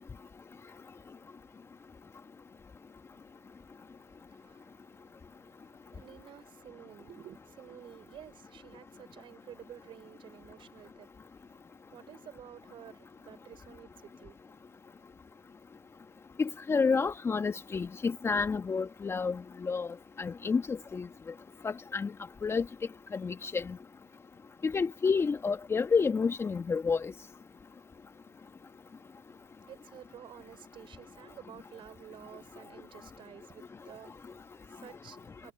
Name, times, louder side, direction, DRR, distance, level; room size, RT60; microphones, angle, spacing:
voice 1, 3.1-14.6 29.1-35.5, right 10 dB, 35° right, 5.3 m, -52 dB
voice 2, 16.4-19.9 20.2-21.1 21.6-22.1 22.4-22.6 23.1-23.8 24.6-27.1, left 5 dB, 15° left, 1.5 m, -29 dB
hypercardioid pair, 100°, 15 cm